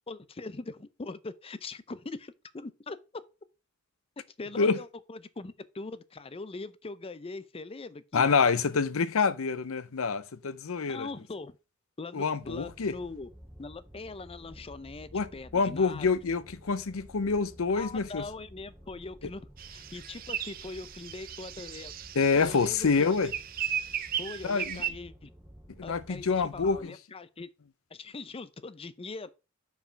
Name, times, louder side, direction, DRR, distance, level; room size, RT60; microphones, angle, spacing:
voice 1, 0.1-3.0 4.4-8.3 10.9-11.6 12.0-13.3 13.6-16.1 17.7-21.9 22.4-23.2 24.2-25.3 25.8-27.5 27.9-29.3, left 3 dB, 25° left, 0.5 m, -41 dB
voice 2, 8.1-11.1 12.1-12.9 15.1-18.2 22.1-23.3 24.4-24.8 25.8-26.9, left 5 dB, 80° left, 0.7 m, -27 dB
sound 1, 12.4-26.8, equal, 10° right, 1.1 m, -52 dB
sound 2, 19.6-24.9, right 9 dB, 45° right, 0.5 m, -36 dB
5.7 x 4.8 x 5.6 m
head